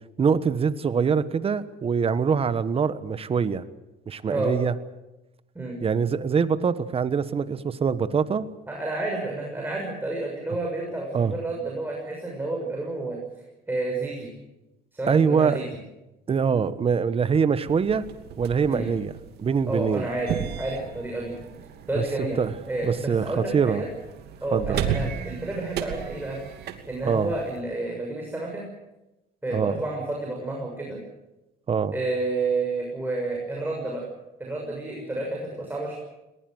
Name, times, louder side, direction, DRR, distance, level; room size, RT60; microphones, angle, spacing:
voice 1, 0.2-3.6 4.1-4.7 5.8-8.5 11.1-11.3 15.1-15.6 16.3-18.0 18.4-19.1 19.4-20.1 21.9-22.0 22.4-22.5 22.8-23.8 24.5-24.8 27.1-27.3 29.5-29.8 31.7-31.9, right 6 dB, 35° right, 13 dB, 1.3 m, -24 dB
voice 2, 8.7-13.2 13.7-14.3 14.9-15.6 18.6-18.9 19.7-21.3 21.9-22.4 22.7-23.9 24.4-28.6 29.4-31.0 31.9-34.1 34.4-36.0, right 2 dB, 10° right, -1 dB, 6.5 m, -30 dB
sound 1, 17.7-27.6, right 8 dB, 75° right, 2.6 m, -35 dB
21.5 x 20.5 x 7.9 m, 0.98 s
cardioid pair, 110°, 17 cm